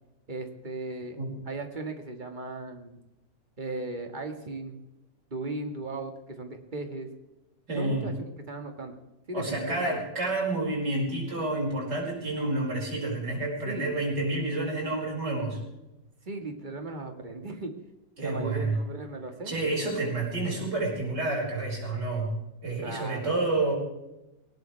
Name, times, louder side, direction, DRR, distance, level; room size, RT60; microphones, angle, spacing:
voice 1, 0.3-1.2 1.5-3.0 3.6-4.8 5.3-7.1 7.8-8.1 8.5-9.0 9.3-10.0 13.6-13.9 16.3-17.7 18.2-19.6 20.0-20.1 22.8-23.5, right 2 dB, 30° right, 5 dB, 1.9 m, -37 dB
voice 2, 7.7-8.1 9.3-15.6 18.2-18.8 19.5-22.4 22.6-23.7, right 2 dB, 85° right, -3 dB, 6.2 m, -29 dB
19.5 x 18.5 x 3.4 m, 0.95 s
omnidirectional pair, 1.8 m